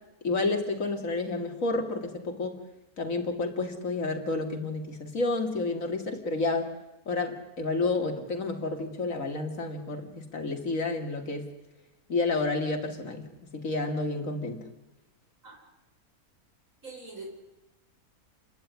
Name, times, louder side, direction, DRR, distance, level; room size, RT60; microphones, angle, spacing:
voice 1, 0.2-2.6 3.0-6.7 7.1-11.5 12.1-13.2 13.5-14.6, left 3 dB, 60° left, 4 dB, 3.2 m, -30 dB
voice 2, 16.8-17.2, right 4 dB, 60° right, -1 dB, 6.1 m, -43 dB
29.5 x 12.5 x 9.9 m, 1.0 s
omnidirectional pair, 1.6 m